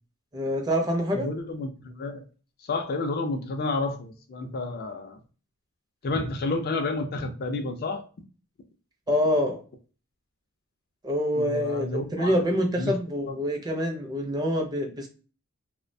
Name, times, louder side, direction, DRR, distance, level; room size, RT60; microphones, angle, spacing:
voice 1, 0.3-1.3 9.1-9.6 11.0-15.1, equal, 20° right, 2 dB, 0.5 m, -26 dB
voice 2, 1.1-2.2 2.6-5.2 6.0-8.0 11.3-12.3 12.8-13.0, left 3 dB, 45° left, 6 dB, 0.4 m, -30 dB
2.2 x 2.1 x 2.6 m, 0.37 s
head